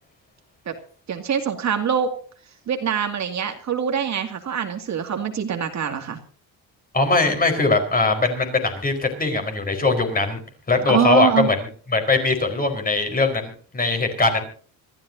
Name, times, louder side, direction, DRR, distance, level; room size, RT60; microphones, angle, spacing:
voice 1, 1.1-2.2 2.7-6.2 10.9-11.5, right 8 dB, 45° right, 5 dB, 2.3 m, -24 dB
voice 2, 6.9-10.4 10.7-11.6 11.9-14.4, left 3 dB, 25° left, 5 dB, 4.5 m, -21 dB
25.5 x 14.0 x 2.7 m, 0.43 s
cardioid pair, 140°, 38 cm